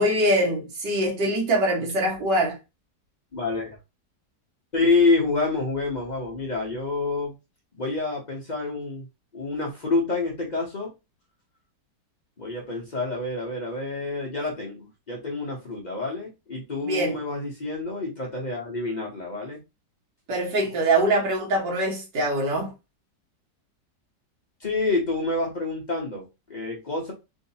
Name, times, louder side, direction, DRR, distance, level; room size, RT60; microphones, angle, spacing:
voice 1, 0.0-2.6 16.9-17.2 20.3-22.7, right 1 dB, 75° right, 1.9 m, -23 dB
voice 2, 3.3-3.8 4.7-7.3 7.7-9.1 9.3-10.9 12.4-19.6 24.6-27.1, left 3 dB, 40° left, 0.6 m, -27 dB
3.8 x 2.6 x 2.7 m
omnidirectional pair, 1.9 m